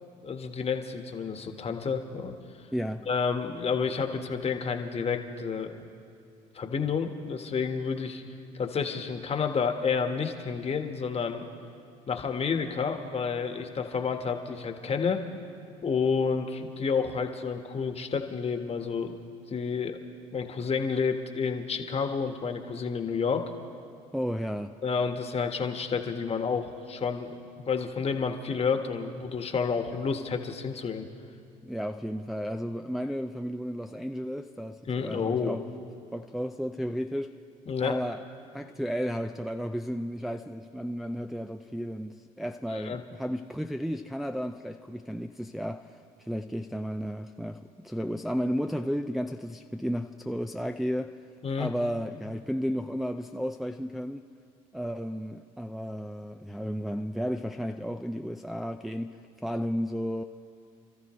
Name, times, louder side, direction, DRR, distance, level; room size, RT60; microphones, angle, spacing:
voice 1, 0.2-2.3 3.1-5.8 6.5-8.2 8.5-11.5 12.1-15.2 15.8-19.2 19.5-20.0 20.3-23.4 24.8-31.1 34.9-35.6 37.7-38.0 42.7-43.0 51.4-51.7, left 5 dB, 35° left, 1.5 m, -30 dB
voice 2, 2.7-3.1 24.1-24.8 31.6-35.7 36.1-37.4 37.8-38.2 38.5-51.3 51.6-54.2 54.7-59.2 59.4-60.2, equal, ahead, 0.5 m, -33 dB
28.5 x 13.5 x 3.2 m
hypercardioid pair, 65°, 17 cm